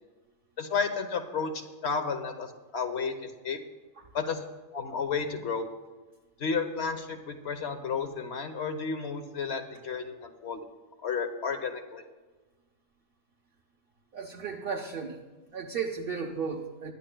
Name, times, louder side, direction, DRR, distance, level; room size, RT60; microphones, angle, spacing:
voice 1, 0.6-3.6 4.1-4.5 4.7-5.7 6.4-10.6 11.0-12.0, left 5 dB, 65° left, 7 dB, 1.3 m, -32 dB
voice 2, 14.1-15.2 15.5-16.9, right 5 dB, 50° right, 0 dB, 1.0 m, -34 dB
21.0 x 11.0 x 2.2 m, 1.3 s
omnidirectional pair, 1.2 m